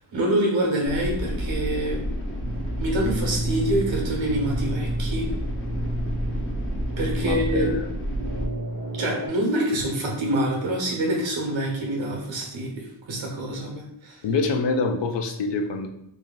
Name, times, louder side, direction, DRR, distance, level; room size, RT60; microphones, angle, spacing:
voice 1, 0.1-2.0 2.8-5.3 7.0-7.7 9.0-14.2, right 1 dB, 85° right, 0 dB, 1.2 m, -26 dB
sound 1, 0.8-8.4, equal, 30° left, 0.6 m, -30 dB
sound 2, 2.4-9.3, right 1 dB, 50° right, 0.6 m, -32 dB
voice 2, 7.2-7.9 14.2-15.9, left 3 dB, 70° left, 5 dB, 0.6 m, -25 dB
3.1 x 2.7 x 3.8 m, 0.76 s
wide cardioid pair, 115°, 45 cm